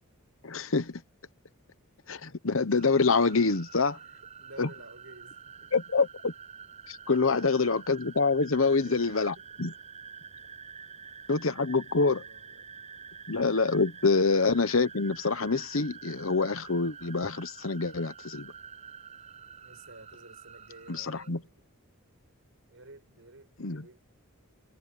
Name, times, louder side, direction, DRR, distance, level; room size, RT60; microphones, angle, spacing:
voice 1, 0.4-1.0 2.1-4.0 4.6-4.7 5.7-6.3 6.9-9.3 9.6-9.7 11.3-12.2 13.3-18.5 20.9-21.4 23.6-23.8, left 4 dB, 70° left, 1.1 m, -26 dB
sound 1, 2.8-21.3, right 6 dB, 30° right, 7.3 m, -48 dB
voice 2, 3.9-5.7 7.2-7.4 8.6-9.6 10.8-11.0 11.9-12.7 19.6-21.6 22.7-24.0, right 2 dB, 65° right, 6.2 m, -53 dB
head